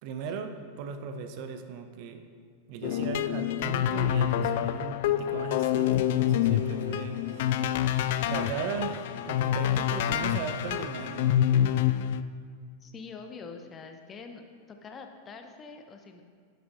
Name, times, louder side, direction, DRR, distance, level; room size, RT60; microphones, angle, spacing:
voice 1, 0.0-2.2 2.7-7.6 8.3-11.4, right 6 dB, 45° right, 7 dB, 0.8 m, -37 dB
sound 1, 2.8-12.2, left 11 dB, 55° left, 0.3 m, -27 dB
sound 2, 5.3-11.8, right 2 dB, 80° right, 0.7 m, -50 dB
voice 2, 12.8-14.4 14.7-16.2, left 5 dB, 25° left, 5 dB, 0.9 m, -45 dB
12.0 x 9.8 x 2.7 m, 2.1 s
figure-of-eight pair, 90°, 0 cm